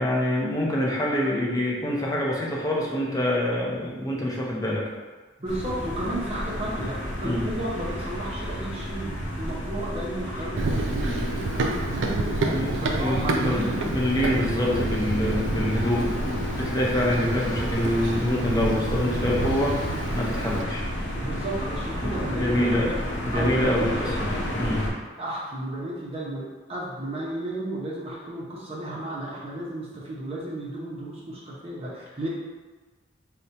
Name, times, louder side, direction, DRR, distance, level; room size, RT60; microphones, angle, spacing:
voice 1, 0.0-4.9 7.2-7.5 11.0-11.2 12.5-20.9 21.9-22.9 23.2-24.9, left 1 dB, 20° left, -3 dB, 0.5 m, -26 dB
voice 2, 5.4-13.8 21.2-23.0 23.3-24.0 25.2-32.3, right 1 dB, 35° right, -6 dB, 0.6 m, -33 dB
sound 1, 5.5-24.9, equal, 75° left, 0.7 m, -31 dB
Run, 10.6-20.6, right 2 dB, 80° right, 0.4 m, -30 dB
4.8 x 2.1 x 2.8 m, 1.3 s
head